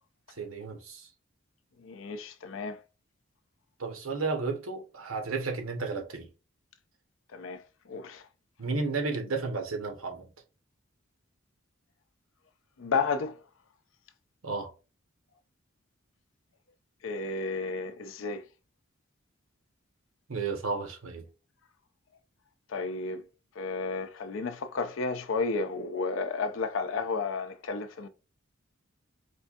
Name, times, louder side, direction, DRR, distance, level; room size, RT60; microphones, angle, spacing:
voice 1, 0.4-1.1 3.8-6.3 8.6-10.3 14.4-14.7 20.3-21.2, right 4 dB, 80° right, 0.9 m, -33 dB
voice 2, 1.8-2.8 7.3-7.6 7.9-8.2 12.8-13.4 17.0-18.4 22.7-23.2 23.6-28.1, left 4 dB, 70° left, 0.5 m, -32 dB
4.3 x 2.6 x 2.4 m
head